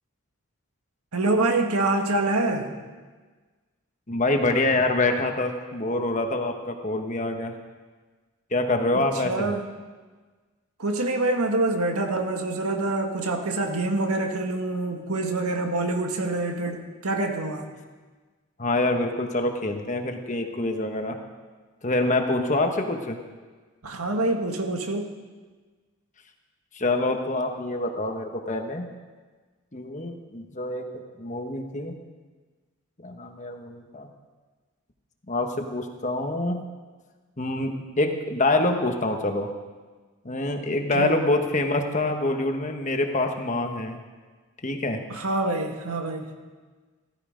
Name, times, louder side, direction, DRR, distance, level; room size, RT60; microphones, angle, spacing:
voice 1, 1.1-2.7 8.9-9.6 10.8-17.7 23.8-25.1 40.9-41.2 45.1-46.3, right 2 dB, 85° right, 4 dB, 1.7 m, -26 dB
voice 2, 4.1-7.5 8.5-9.5 18.6-21.2 21.8-23.2 26.7-28.9 29.7-30.9 31.2-32.0 33.0-34.1 35.3-36.6 37.4-39.5 40.2-44.0 44.6-45.0, left 2 dB, 35° left, 4 dB, 1.2 m, -26 dB
15.5 x 13.5 x 5.1 m, 1.4 s
head